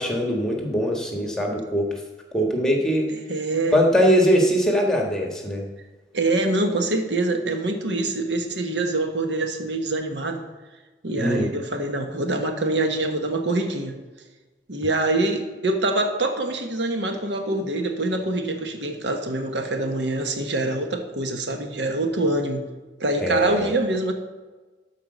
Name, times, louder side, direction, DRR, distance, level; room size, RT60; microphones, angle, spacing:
voice 1, 0.0-1.9 2.3-3.1 3.7-5.6 11.2-11.5 23.2-23.7, equal, 5° left, 0 dB, 1.5 m, -21 dB
voice 2, 3.3-3.8 6.1-10.4 11.0-13.9 14.7-22.7 23.0-24.1, right 2 dB, 85° right, 5 dB, 1.2 m, -25 dB
12.0 x 4.8 x 6.7 m, 1.2 s
head